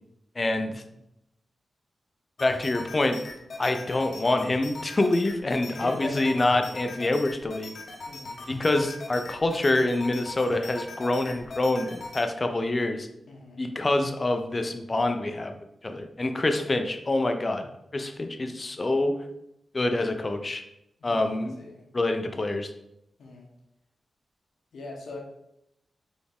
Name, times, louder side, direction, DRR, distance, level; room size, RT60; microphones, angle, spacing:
voice 1, 0.4-0.8 2.4-3.2 3.6-7.7 8.5-13.1 13.6-15.5 15.8-19.2 19.7-20.6 21.0-21.6 21.9-22.7, left 2 dB, 25° left, 6 dB, 0.4 m, -26 dB
sound 1, 2.4-12.2, left 3 dB, 55° left, 0.8 m, -41 dB
voice 2, 5.7-6.3 8.0-8.5 13.3-13.6 16.3-16.4 21.0-21.8 23.2-23.5 24.7-25.2, left 2 dB, 90° left, -1 dB, 0.9 m, -41 dB
4.2 x 3.4 x 3.4 m, 0.81 s
wide cardioid pair, 160°, 0 cm